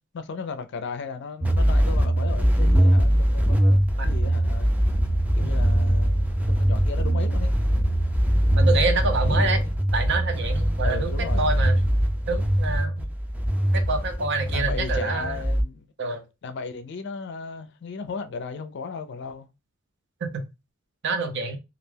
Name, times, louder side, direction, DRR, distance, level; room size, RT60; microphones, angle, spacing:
voice 1, 0.1-4.7 5.4-7.5 8.9-9.7 10.8-11.5 14.5-15.9 16.4-19.5, left 4 dB, 60° left, 0.4 m, -36 dB
sound 1, 1.4-15.6, equal, 10° right, 0.4 m, -22 dB
voice 2, 8.6-9.6 9.9-11.8 12.3-13.1 13.7-15.4 16.0-16.2 20.3-20.4 21.0-21.6, right 3 dB, 60° right, 0.6 m, -27 dB
2.4 x 2.2 x 3.2 m
head